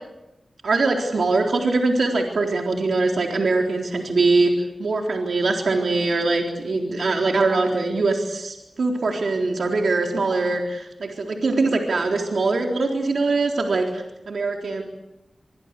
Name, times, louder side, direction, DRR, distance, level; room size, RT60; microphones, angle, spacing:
voice 1, 0.6-4.5 4.8-14.8, right 3 dB, 80° right, 2 dB, 3.9 m, -22 dB
25.5 x 23.5 x 8.4 m, 0.93 s
cardioid pair, 45°, 0 cm